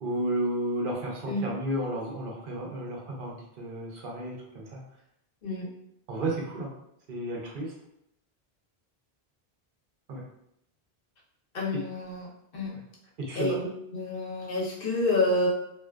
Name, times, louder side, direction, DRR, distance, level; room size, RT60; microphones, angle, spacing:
voice 1, 0.0-4.8 6.1-6.7 7.1-7.7 10.1-10.2 13.2-13.6, right 1 dB, 60° right, -2 dB, 0.8 m, -32 dB
voice 2, 11.5-12.7 13.3-13.6 13.9-15.5, left 2 dB, 65° left, -4 dB, 0.9 m, -28 dB
2.4 x 2.3 x 2.2 m, 0.79 s
omnidirectional pair, 1.0 m